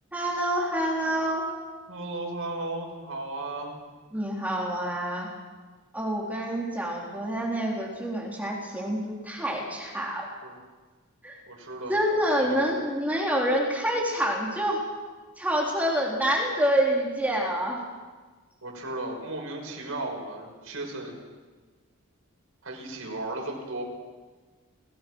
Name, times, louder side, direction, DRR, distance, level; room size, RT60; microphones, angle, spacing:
voice 1, 0.1-1.5 4.1-5.3 5.9-10.3 11.2-11.4 11.9-14.8 15.4-17.8, equal, 5° right, -2 dB, 3.8 m, -27 dB
voice 2, 1.9-3.8 10.4-10.6 11.5-12.0 12.4-12.6 18.6-21.1 22.6-23.8, right 2 dB, 65° right, 0 dB, 6.3 m, -35 dB
30.0 x 18.5 x 6.4 m, 1.4 s
head